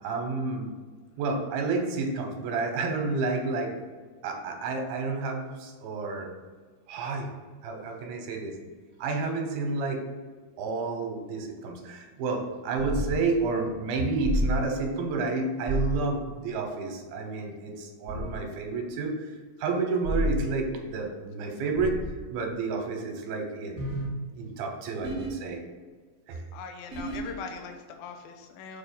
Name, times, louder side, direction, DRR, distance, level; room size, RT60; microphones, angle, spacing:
voice 1, 0.0-0.7 1.2-3.7 4.2-6.3 6.9-7.3 7.6-8.5 9.0-10.0 10.6-22.0 22.3-23.9 24.4-25.6 26.3-26.4, right 3 dB, 75° right, 2 dB, 2.6 m, -30 dB
sound 1, 12.8-13.1 14.2-14.6 15.7-16.0 18.1-18.3 20.0-20.4 21.8-22.2 23.8-24.1 25.0-25.3 26.9-27.3, equal, 55° right, 0.7 m, -29 dB
voice 2, 26.5-28.8, left 5 dB, 80° left, 4 dB, 2.3 m, -41 dB
7.0 x 3.0 x 5.9 m, 1.5 s
omnidirectional pair, 4.5 m